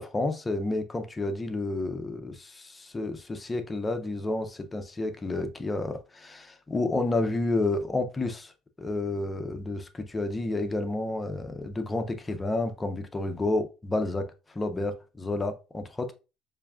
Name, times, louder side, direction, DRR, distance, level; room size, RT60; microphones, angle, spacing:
voice 1, 0.0-8.5 8.8-14.3 14.5-16.1, left 2 dB, 10° left, 0.4 m, -30 dB
7.0 x 2.5 x 2.3 m
cardioid pair, 180°, 0 cm